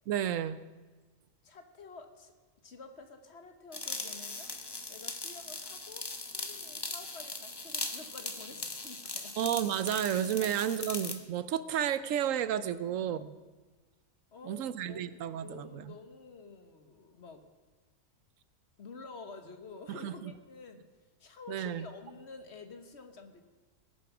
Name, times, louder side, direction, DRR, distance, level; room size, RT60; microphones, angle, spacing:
voice 1, 0.1-0.6 9.4-13.3 14.4-15.9 19.9-20.3 21.5-21.9, right 10 dB, 75° right, 15 dB, 1.0 m, -32 dB
voice 2, 1.4-2.3 2.6-4.6 4.9-9.4 12.8-13.2 14.3-17.4 18.8-20.9 21.2-23.4, left 4 dB, 55° left, 7 dB, 1.4 m, -50 dB
sound 1, 3.7-11.2, left 3 dB, 20° left, 0.7 m, -40 dB
20.0 x 7.0 x 6.0 m, 1.3 s
omnidirectional pair, 1.4 m